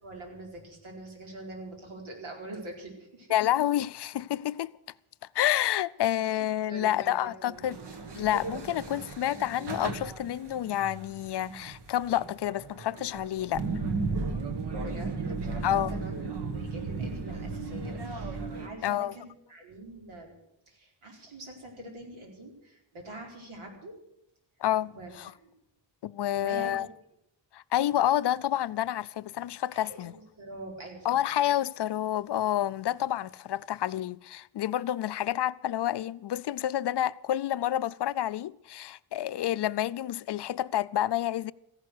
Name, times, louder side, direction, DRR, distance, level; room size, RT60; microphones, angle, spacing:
voice 1, 0.0-3.3 6.7-7.7 14.8-16.1 16.4-20.4 20.7-24.0 25.0-25.5 26.3-26.9 29.7-31.1, right 2 dB, 80° right, 4.7 m, -44 dB
voice 2, 3.3-4.7 5.3-7.8 8.2-13.6 15.6-15.9 18.8-19.1 24.6-25.3 26.0-26.9 27.5-30.1 31.0-41.5, left 12 dB, 60° left, 0.5 m, -29 dB
sound 1, 7.6-18.7, right 3 dB, 55° right, 1.7 m, -35 dB
15.0 x 11.5 x 8.0 m
wide cardioid pair, 170°, 47 cm